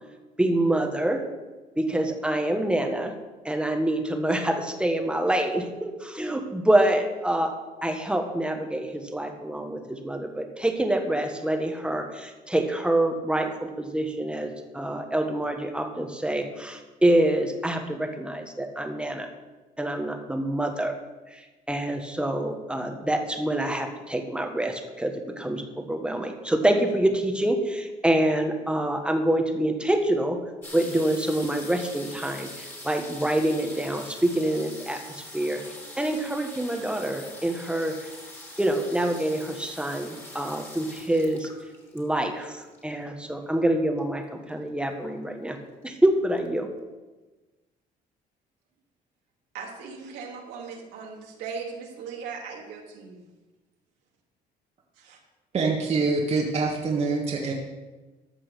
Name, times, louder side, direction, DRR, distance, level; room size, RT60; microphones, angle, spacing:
voice 1, 0.4-1.2 1.8-3.1 3.4-7.6 7.8-19.3 19.8-21.0 21.3-21.4 21.7-30.4 30.7-35.6 36.0-37.9 38.6-41.5 41.9-45.6 45.8-46.7, right 1 dB, 5° right, 5 dB, 1.4 m, -26 dB
sound 1, 30.6-43.2 44.0-44.1 44.3-44.7 45.0-45.6 46.1-46.2 46.4-46.5, left 1 dB, 15° left, 3.0 m, -43 dB
voice 2, 49.5-53.2 55.0-55.2, right 5 dB, 85° right, -1 dB, 2.5 m, -38 dB
voice 3, 55.5-57.5, right 4 dB, 40° right, -1 dB, 1.7 m, -25 dB
14.0 x 6.1 x 6.4 m, 1.2 s
cardioid pair, 110°, 17 cm